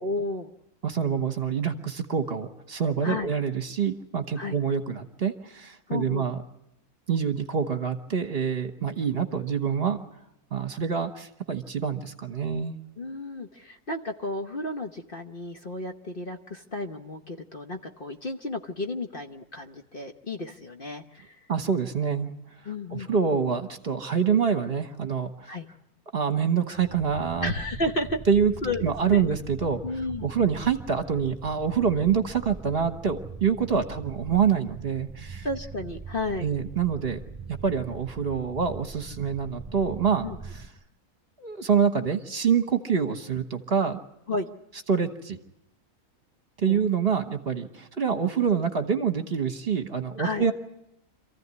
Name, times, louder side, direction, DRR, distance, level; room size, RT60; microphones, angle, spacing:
voice 1, 0.0-0.5 3.0-3.3 4.4-4.5 5.9-6.3 13.0-21.4 22.6-23.1 25.5-25.7 27.4-28.2 28.6-29.3 29.8-30.3 35.4-36.5 40.2-40.4 44.3-44.5 46.7-46.8 50.2-50.5, left 2 dB, 40° left, 4 dB, 1.0 m, -32 dB
voice 2, 0.8-6.4 7.1-10.0 10.5-12.8 21.5-22.3 22.9-25.6 26.1-27.5 28.3-28.5 28.8-29.8 30.2-35.5 36.4-37.2 37.5-40.2 40.5-40.6 41.4-44.0 44.9-45.4 46.6-50.5, right 6 dB, 40° right, 7 dB, 1.5 m, -26 dB
sound 1, 26.7-40.7, right 5 dB, 10° right, 2.1 m, -41 dB
27.0 x 15.0 x 9.6 m, 0.83 s
omnidirectional pair, 1.6 m